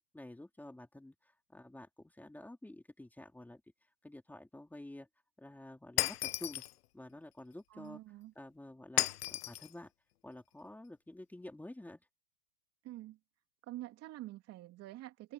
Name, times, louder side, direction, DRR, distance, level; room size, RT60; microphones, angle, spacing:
voice 1, 0.1-3.6 4.0-5.1 5.4-6.6 6.9-8.0 8.4-9.9 10.2-12.0, left 1 dB, 5° left, 3.9 m, -50 dB
Shatter, 6.0-6.7 9.0-9.7, left 14 dB, 85° left, 0.6 m, -34 dB
voice 2, 7.7-8.3 12.8-13.2 13.7-15.3, right 15 dB, 35° right, 3.0 m, -47 dB
hypercardioid pair, 120°, 44 cm